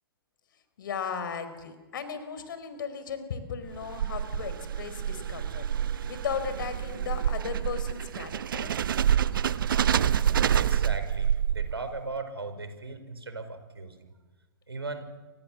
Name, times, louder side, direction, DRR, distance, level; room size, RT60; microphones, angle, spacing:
voice 1, 0.8-8.8, left 7 dB, 55° left, 11 dB, 4.6 m, -36 dB
sound 1, 3.7-12.0, right 9 dB, 60° right, 1.0 m, -27 dB
voice 2, 10.5-14.1 14.7-15.1, right 3 dB, 75° right, 9 dB, 4.9 m, -38 dB
28.5 x 26.5 x 7.3 m, 1.2 s
figure-of-eight pair, 110°, 13 cm